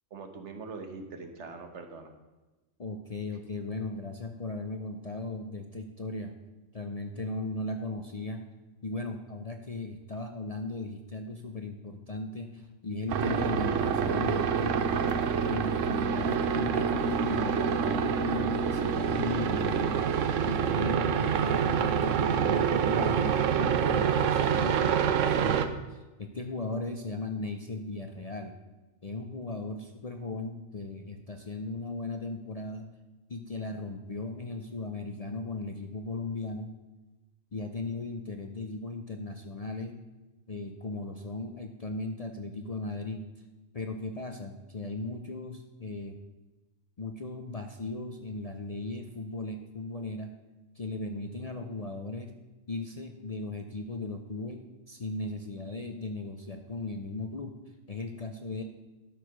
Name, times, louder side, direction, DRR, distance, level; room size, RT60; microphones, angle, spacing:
voice 1, 0.1-2.1, right 4 dB, 65° right, 6 dB, 1.4 m, -42 dB
voice 2, 2.8-6.3 6.7-8.5 8.8-15.0 15.5-20.1 20.5-28.6 29.0-32.9 33.3-36.7 37.5-40.0 40.5-43.3 43.7-46.2 47.0-50.3 50.8-52.4 52.7-57.6 57.9-58.6, left 2 dB, 40° left, 5 dB, 0.6 m, -37 dB
sound 1, 13.1-25.7, right 7 dB, 80° right, 1.0 m, -27 dB
12.0 x 4.8 x 6.5 m, 1.1 s
omnidirectional pair, 1.3 m